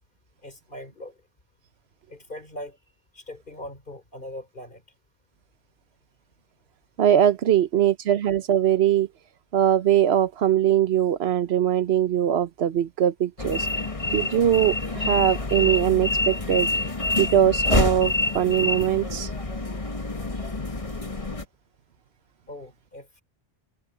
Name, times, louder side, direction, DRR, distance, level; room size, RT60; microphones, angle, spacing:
voice 1, 0.4-1.2 2.1-2.8 3.1-4.8 14.3-14.4 15.0-15.1 22.5-23.2, left 1 dB, 55° left, 4.2 m, -40 dB
voice 2, 7.0-9.1 9.5-13.7 14.1-16.7 17.1-19.3, right 10 dB, 80° right, 1.1 m, -21 dB
sound 1, 13.4-21.4, left 2 dB, 30° left, 1.7 m, -27 dB
omnidirectional pair, 1.1 m